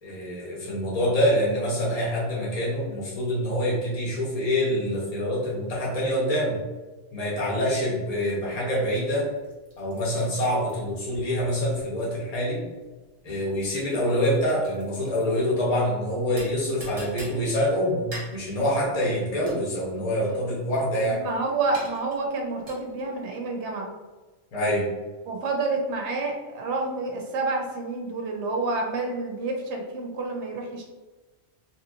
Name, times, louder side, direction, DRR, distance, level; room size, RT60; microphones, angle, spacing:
voice 1, 0.0-6.6 7.1-9.3 9.8-12.6 13.2-21.2 24.5-24.9, equal, 35° left, -5 dB, 0.9 m, -26 dB
sound 1, 8.1-23.2, right 1 dB, 35° right, 0.9 m, -46 dB
voice 2, 21.1-23.9 25.3-30.9, right 3 dB, 85° right, 2 dB, 0.9 m, -29 dB
3.0 x 2.7 x 2.5 m, 1.2 s
omnidirectional pair, 1.1 m